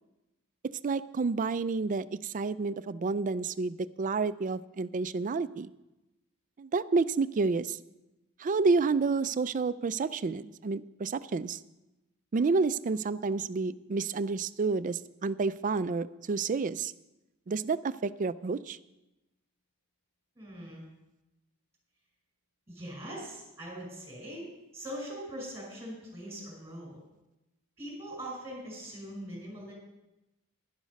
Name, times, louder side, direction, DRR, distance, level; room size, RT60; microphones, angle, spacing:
voice 1, 0.8-5.7 6.6-7.8 8.4-11.6 12.3-16.9 17.5-18.8, right 4 dB, 35° right, 14 dB, 0.4 m, -29 dB
voice 2, 20.3-20.8 22.7-24.4 24.7-27.0 27.8-29.7, equal, 15° right, -2 dB, 5.1 m, -41 dB
11.5 x 11.5 x 5.3 m, 0.97 s
head